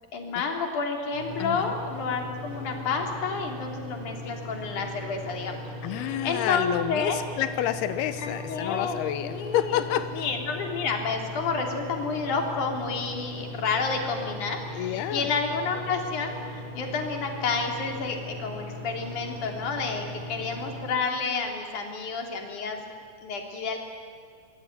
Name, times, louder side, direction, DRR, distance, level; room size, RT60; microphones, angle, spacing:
voice 1, 0.1-5.6 5.9-7.2 8.2-9.8 10.1-22.8 23.2-23.8, left 4 dB, 40° left, 2 dB, 4.1 m, -30 dB
sound 1, 1.1-20.9, left 2 dB, 40° right, 8.9 m, -39 dB
voice 2, 1.4-1.7 5.8-10.3 14.7-15.3, left 11 dB, 85° left, 10 dB, 2.2 m, -29 dB
25.0 x 22.5 x 9.7 m, 2.3 s
omnidirectional pair, 5.9 m